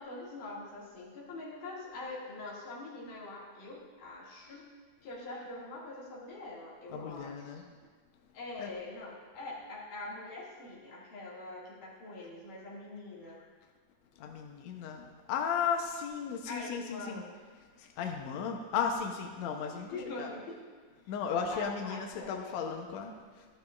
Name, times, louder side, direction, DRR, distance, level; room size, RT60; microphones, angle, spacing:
voice 1, 0.0-4.7 5.0-7.6 8.3-13.4 16.5-17.4 19.9-20.6 21.5-22.5, left 2 dB, 90° left, -5 dB, 3.7 m, -44 dB
voice 2, 6.9-7.6 8.6-8.7 14.2-17.2 17.8-20.3 21.1-23.5, left 6 dB, 75° left, 2 dB, 1.9 m, -35 dB
13.5 x 11.5 x 2.4 m, 1.5 s
omnidirectional pair, 3.6 m